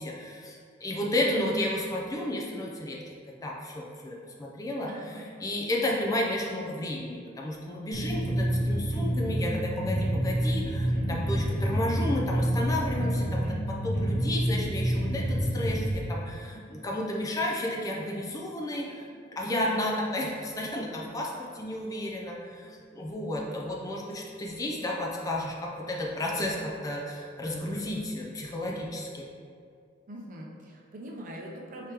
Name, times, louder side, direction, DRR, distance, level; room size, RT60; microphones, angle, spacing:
voice 1, 0.0-3.1 3.4-19.1 19.3-29.3, left 1 dB, 20° left, -2 dB, 0.4 m, -32 dB
voice 2, 4.9-5.2 30.1-31.9, right 1 dB, 45° right, -2 dB, 0.6 m, -42 dB
sound 1, 7.9-15.9, equal, 65° left, 1.1 m, -28 dB
4.7 x 3.5 x 2.9 m, 2.3 s
head